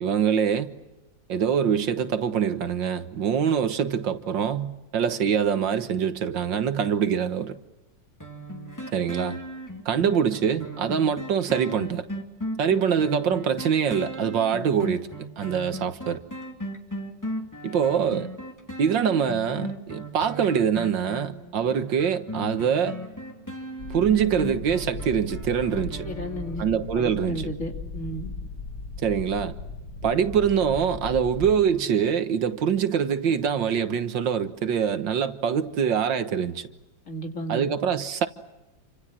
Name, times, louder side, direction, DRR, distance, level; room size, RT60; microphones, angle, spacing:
voice 1, 0.0-0.7 1.3-7.6 8.9-9.4 9.9-12.1 12.6-15.1 15.4-16.2 17.6-18.3 18.8-23.0 23.9-26.1 26.6-27.4 29.0-29.5 30.0-36.6 37.5-38.3, right 7 dB, 75° right, 2.0 m, -24 dB
sound 1, 8.2-26.9 27.3-27.4, equal, 10° left, 2.6 m, -36 dB
sound 2, 23.8-31.5, left 3 dB, 75° left, 3.9 m, -37 dB
voice 2, 26.0-26.6 26.9-28.3 37.1-37.7, equal, 40° left, 3.1 m, -33 dB
28.5 x 26.0 x 7.5 m
omnidirectional pair, 2.0 m